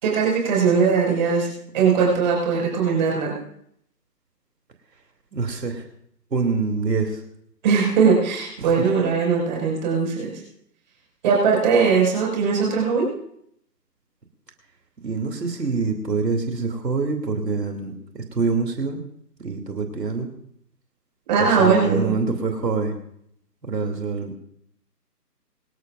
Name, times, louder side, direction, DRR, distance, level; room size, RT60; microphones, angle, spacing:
voice 1, 0.0-1.5 1.7-3.4 7.6-10.3 11.2-13.0 21.3-22.1, right 5 dB, 30° right, -2 dB, 5.7 m, -20 dB
voice 2, 5.3-5.8 6.3-7.2 8.6-8.7 15.0-19.0 19.4-20.3 21.4-22.9 23.6-24.4, right 4 dB, 80° right, 3 dB, 3.0 m, -25 dB
24.5 x 13.0 x 2.6 m, 0.71 s
hypercardioid pair, 160°, 49 cm